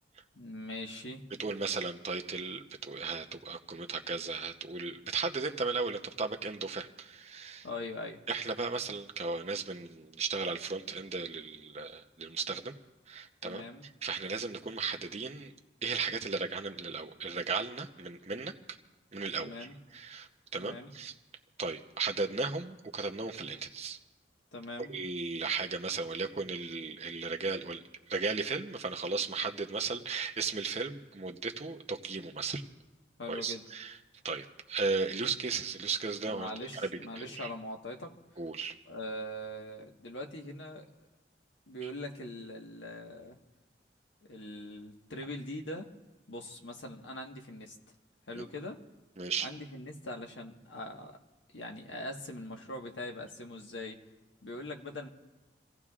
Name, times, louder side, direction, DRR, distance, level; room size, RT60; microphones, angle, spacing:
voice 1, 0.3-1.2 7.6-8.2 13.4-13.9 19.4-19.8 20.5-20.9 24.5-24.9 33.2-33.7 36.3-38.1 38.9-40.9 41.7-43.4 44.3-45.9 46.3-47.8 48.3-48.8 49.4-51.2 51.5-54.0 54.4-55.1, left 1 dB, 90° left, 2 dB, 1.5 m, -42 dB
voice 2, 1.4-7.7 8.3-12.7 13.1-13.6 14.0-15.5 15.8-18.5 19.1-19.5 19.9-21.1 21.6-24.0 24.9-27.8 28.1-32.6 33.3-34.0 34.2-36.9 37.2-37.5 38.4-38.7 48.3-48.4 49.2-49.5, right 4 dB, 35° right, 4 dB, 0.8 m, -35 dB
29.0 x 16.0 x 2.5 m, 1.1 s
head